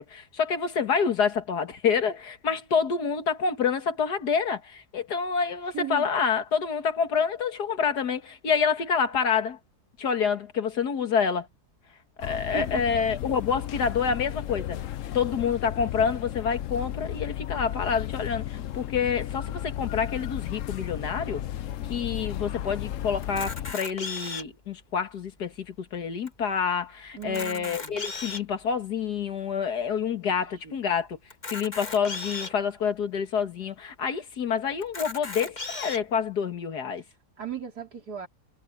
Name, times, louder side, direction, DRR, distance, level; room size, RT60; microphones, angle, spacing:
voice 1, 0.0-9.6 10.0-11.5 12.2-14.8 15.1-21.4 21.9-31.2 31.5-37.0, left 6 dB, 85° left, 2.2 m, -27 dB
voice 2, 5.7-6.1 12.5-13.1 27.2-28.0 30.6-30.7 37.4-38.3, right 9 dB, 75° right, 4.1 m, -36 dB
sound 1, 12.2-23.7, left 11 dB, 65° left, 0.9 m, -34 dB
Camera, 23.2-24.6 25.3-25.4 25.6-25.7 26.3-26.4 27.2-28.5 29.2-29.3 31.3-32.5 33.3-33.4 33.6-33.7 34.8-36.0, left 3 dB, 30° left, 1.6 m, -36 dB
omnidirectional pair, 1.7 m